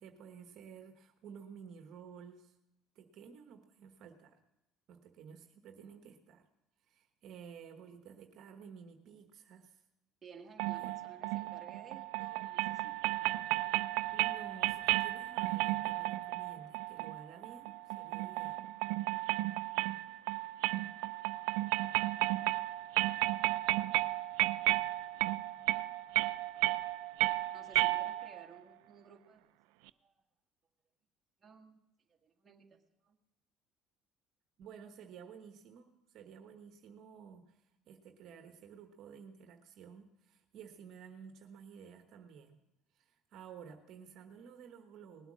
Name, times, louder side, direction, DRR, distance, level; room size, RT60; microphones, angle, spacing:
voice 1, 0.0-2.5 2.9-4.4 4.9-6.5 6.8-9.8 10.8-10.9 14.1-18.6 34.6-42.6 42.9-45.3, right 7 dB, 60° right, 5 dB, 1.1 m, -53 dB
voice 2, 10.2-13.4 19.0-19.1 27.5-29.5 30.0-30.2 31.4-31.8 32.1-33.2, right 5 dB, 25° right, 2 dB, 1.7 m, -57 dB
sound 1, 10.6-28.4, right 19 dB, 90° right, 0.4 m, -33 dB
19.0 x 8.0 x 6.2 m, 0.90 s
cardioid pair, 110°, 0 cm